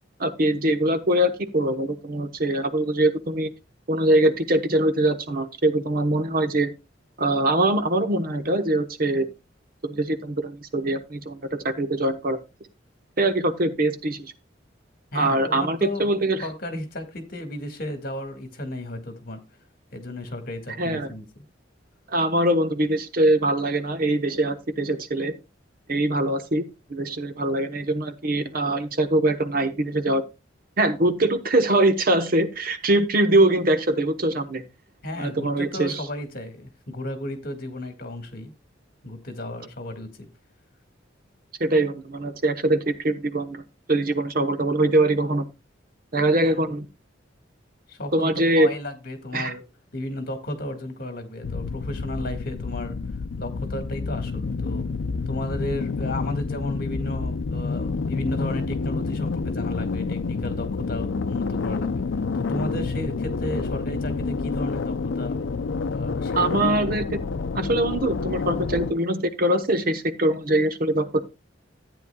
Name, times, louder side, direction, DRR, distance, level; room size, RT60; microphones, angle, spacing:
voice 1, 0.2-3.5 3.9-6.7 7.2-9.3 9.8-12.4 13.2-14.3 15.1-16.5 20.8-21.1 22.1-25.3 25.9-26.6 26.9-30.2 30.8-34.6 35.2-36.0 41.6-43.6 43.9-45.4 46.1-46.9 48.1-48.7 49.3-49.5 66.4-67.2 67.5-71.2, right 1 dB, 50° right, 1.0 m, -23 dB
voice 2, 15.1-16.1 16.4-19.4 19.9-21.4 35.0-38.5 39.0-40.3 46.4-46.7 47.9-48.3 48.6-49.6 49.9-53.0 53.4-54.9 55.3-62.0 62.3-65.4 65.9-66.6, left 1 dB, 50° left, 1.9 m, -33 dB
sound 1, 51.4-68.9, left 4 dB, 90° left, 0.5 m, -28 dB
13.5 x 9.1 x 2.3 m
head